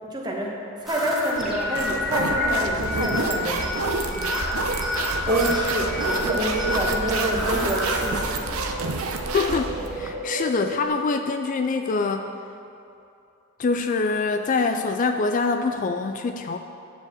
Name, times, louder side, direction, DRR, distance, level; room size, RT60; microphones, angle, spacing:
voice 1, 0.0-3.8 4.1-4.3 4.7-8.6, right 1 dB, 20° right, -2 dB, 1.4 m, -27 dB
sound 1, 0.9-8.2, left 2 dB, ahead, 1.7 m, -29 dB
sound 2, 1.4-10.1, right 3 dB, 80° right, 0.8 m, -29 dB
sound 3, 5.7-10.9, right 1 dB, 55° left, 1.7 m, -36 dB
voice 2, 9.3-12.3 13.6-16.6, left 4 dB, 40° left, 6 dB, 0.3 m, -24 dB
9.8 x 4.9 x 7.6 m, 2.7 s
head